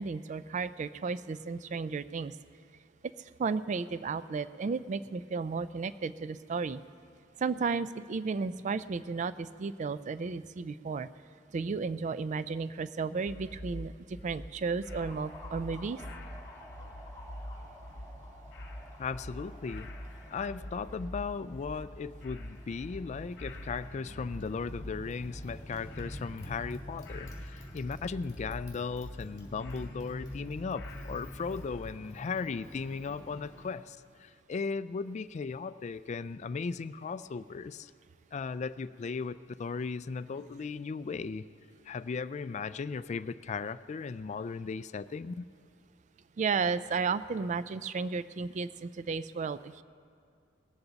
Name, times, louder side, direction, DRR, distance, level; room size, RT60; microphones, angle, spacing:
voice 1, 0.0-2.4 3.4-6.8 7.4-11.1 11.5-16.0 46.4-49.8, right 4 dB, 40° right, 15 dB, 0.3 m, -33 dB
sound 1, 13.3-31.9, left 1 dB, 60° left, 1.1 m, -45 dB
Motorcycle, 14.8-33.8, equal, 20° left, 3.5 m, -49 dB
voice 2, 19.0-19.9 20.3-37.9 38.3-41.4 41.9-45.4, left 5 dB, 35° left, 15 dB, 0.3 m, -37 dB
19.0 x 14.0 x 4.0 m, 2.3 s
head